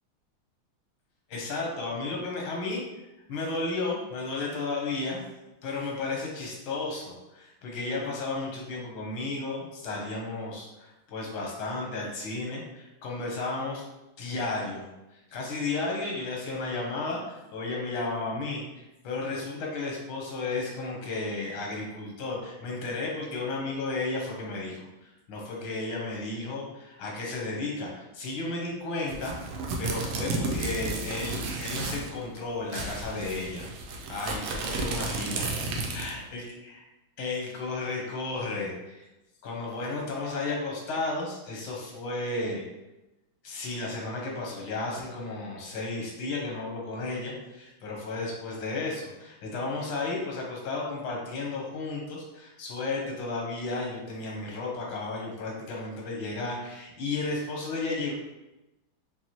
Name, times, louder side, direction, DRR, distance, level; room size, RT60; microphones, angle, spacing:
voice 1, 1.3-2.8 3.3-5.3 5.6-13.9 14.2-14.8 15.1-29.4 29.8-33.7 34.1-35.5 35.9-36.7 37.2-38.7 39.0-39.1 39.4-42.6 43.4-58.1, left 3 dB, 85° left, -1 dB, 1.8 m, -33 dB
sound 1, 29.1-32.1 32.4-32.5 32.7-36.2, right 3 dB, 80° right, 1.5 m, -32 dB
5.4 x 2.6 x 2.9 m, 0.99 s
omnidirectional pair, 2.3 m